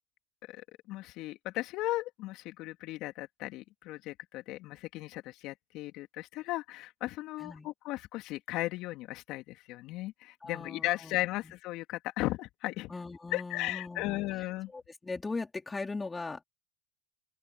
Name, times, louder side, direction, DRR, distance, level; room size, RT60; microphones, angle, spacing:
voice 1, 0.5-12.9 13.3-14.7, left 18 dB, 60° left, 3.1 m, -36 dB
voice 2, 10.4-11.2 11.4-11.5 12.9-14.2 14.7-16.4, left 3 dB, 15° left, 4.2 m, -39 dB
open air
hypercardioid pair, 80°, 0 cm